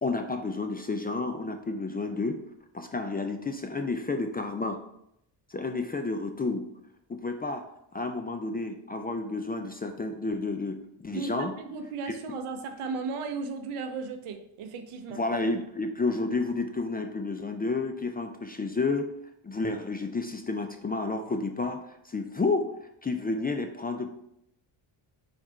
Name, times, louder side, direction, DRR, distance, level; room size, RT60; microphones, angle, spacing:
voice 1, 0.0-2.4 2.7-4.8 5.5-6.7 7.1-7.7 7.9-11.5 12.3-12.4 15.1-19.1 19.4-22.7 23.0-24.1, left 3 dB, 20° left, 6 dB, 0.3 m, -31 dB
voice 2, 11.1-15.2, right 4 dB, 80° right, 6 dB, 0.7 m, -35 dB
4.4 x 2.5 x 4.3 m, 0.76 s
supercardioid pair, 55°, 50 cm